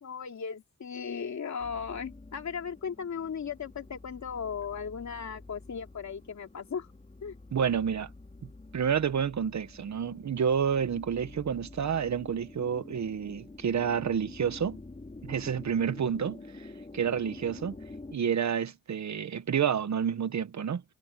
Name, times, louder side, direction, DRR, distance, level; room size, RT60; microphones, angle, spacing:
voice 1, 0.0-6.9 7.2-7.3, left 6 dB, 55° left, 2.9 m, -37 dB
sound 1, 1.6-18.2, left 2 dB, 20° left, 4.0 m, -48 dB
voice 2, 7.5-8.1 8.7-14.8 15.2-16.7 16.9-17.8 18.1-20.8, right 7 dB, 55° right, 1.3 m, -29 dB
wide cardioid pair, 110°, 33 cm